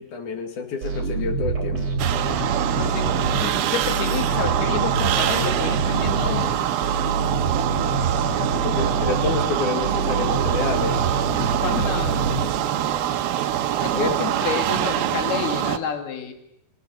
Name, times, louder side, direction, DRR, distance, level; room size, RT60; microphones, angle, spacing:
voice 1, 0.0-2.0 8.5-11.0 13.9-14.2, left 5 dB, 55° left, 5 dB, 3.5 m, -28 dB
sound 1, 0.8-13.0, right 4 dB, 35° right, 5.1 m, -26 dB
sound 2, 2.0-15.8, right 11 dB, 75° right, 2.8 m, -24 dB
voice 2, 2.8-6.7 11.4-12.3 13.8-16.3, left 7 dB, 85° left, 5 dB, 4.0 m, -30 dB
29.0 x 17.5 x 7.9 m, 0.82 s
omnidirectional pair, 4.3 m